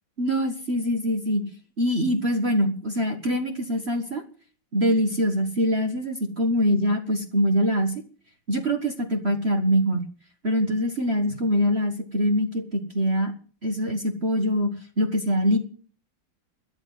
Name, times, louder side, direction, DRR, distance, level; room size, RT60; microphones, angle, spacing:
voice 1, 0.2-1.4 1.8-4.2 4.7-7.9 8.5-10.0 10.4-13.3 13.6-14.7 15.0-15.6, equal, 30° right, 5 dB, 1.6 m, -23 dB
13.5 x 9.0 x 9.4 m, 0.41 s
omnidirectional pair, 2.4 m